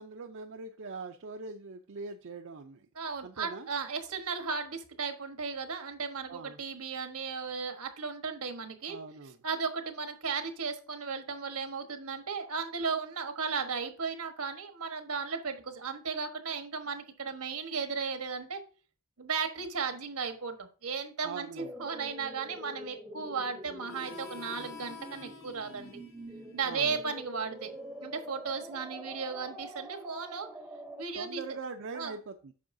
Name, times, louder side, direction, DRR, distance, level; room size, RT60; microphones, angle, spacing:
voice 1, 0.0-2.9 3.2-3.7 6.3-6.6 8.9-9.4 21.2-21.7 26.7-27.0 31.2-32.5, right 4 dB, 60° right, 5 dB, 0.5 m, -42 dB
voice 2, 2.9-9.0 9.4-18.6 19.2-26.0 26.5-27.7 28.0-30.5 31.0-31.4 31.9-32.1, right 5 dB, 80° right, 7 dB, 1.2 m, -35 dB
sound 1, 21.6-31.0, right 1 dB, 10° right, 0.7 m, -46 dB
Harmonica, 23.9-29.1, left 6 dB, 65° left, 2.5 m, -51 dB
8.5 x 6.1 x 2.6 m, 0.37 s
head